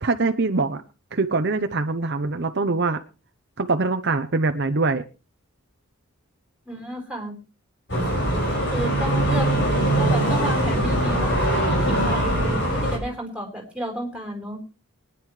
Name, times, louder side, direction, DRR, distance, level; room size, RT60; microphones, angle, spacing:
voice 1, 0.0-0.8 1.1-3.0 3.6-5.0, right 3 dB, 50° right, 8 dB, 0.7 m, -23 dB
voice 2, 6.7-7.4 8.5-9.5 10.0-11.3 11.8-14.6, equal, 5° right, 0 dB, 4.2 m, -32 dB
sound 1, 7.9-13.0, right 1 dB, 55° left, 5.8 m, -22 dB
23.5 x 10.5 x 3.2 m, 0.32 s
head